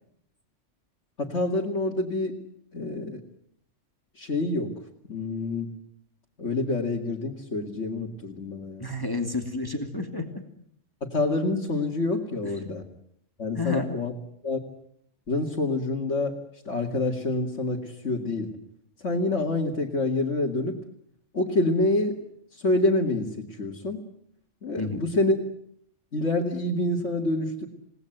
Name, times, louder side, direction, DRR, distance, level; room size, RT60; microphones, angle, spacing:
voice 1, 1.2-2.4 2.7-3.2 4.2-4.7 5.1-5.8 6.4-8.9 11.0-12.9 13.4-14.1 14.4-14.6 15.3-16.4 16.6-18.5 19.0-20.8 21.3-22.2 22.5-24.0 24.6-25.4 26.1-27.7, left 2 dB, 70° left, -2 dB, 2.8 m, -27 dB
voice 2, 8.8-10.4 13.6-13.9 24.8-25.0, left 3 dB, 20° left, 5 dB, 2.5 m, -30 dB
28.5 x 19.0 x 9.2 m, 0.69 s
omnidirectional pair, 1.3 m